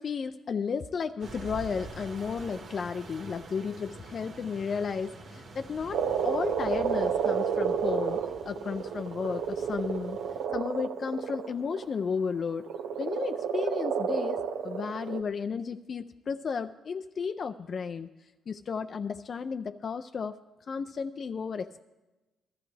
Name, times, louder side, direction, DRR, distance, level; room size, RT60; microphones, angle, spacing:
voice 1, 0.0-10.2 10.5-12.7 13.0-18.1 18.5-20.4 20.7-21.8, left 5 dB, 45° left, 8 dB, 0.4 m, -33 dB
sound 1, 1.2-10.5, right 3 dB, 65° right, 1.8 m, -46 dB
Frog, 5.9-11.8 12.7-15.2, right 7 dB, 85° right, 0.8 m, -31 dB
20.0 x 14.5 x 3.3 m, 1.1 s
cardioid pair, 90°, 0 cm